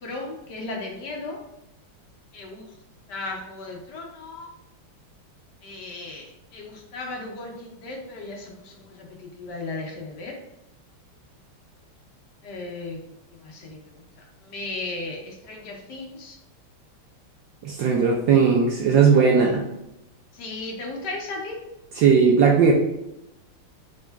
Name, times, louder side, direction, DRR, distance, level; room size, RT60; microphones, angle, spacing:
voice 1, 0.0-1.4 2.3-2.7 3.1-4.5 5.6-10.3 12.4-13.0 13.4-13.8 14.4-16.3 20.3-21.6, left 2 dB, 60° left, 0 dB, 1.3 m, -35 dB
voice 2, 17.6-19.6 21.9-22.7, right 6 dB, 75° right, 0 dB, 1.1 m, -17 dB
6.3 x 3.7 x 2.2 m, 0.86 s
omnidirectional pair, 2.4 m